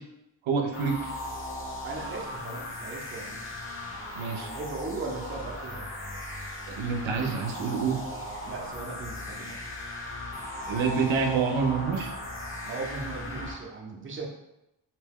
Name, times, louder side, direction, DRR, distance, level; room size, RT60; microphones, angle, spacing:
voice 1, 0.5-1.0 4.1-4.5 6.7-8.0 10.7-12.1, right 5 dB, 90° right, 3 dB, 0.6 m, -27 dB
sound 1, 0.7-13.5, left 1 dB, 30° left, 0.6 m, -38 dB
voice 2, 1.8-3.5 4.3-5.9 7.2-7.4 8.4-9.6 12.7-14.3, right 3 dB, 30° right, 0 dB, 0.5 m, -38 dB
2.8 x 2.2 x 3.4 m, 0.89 s
wide cardioid pair, 90°, 46 cm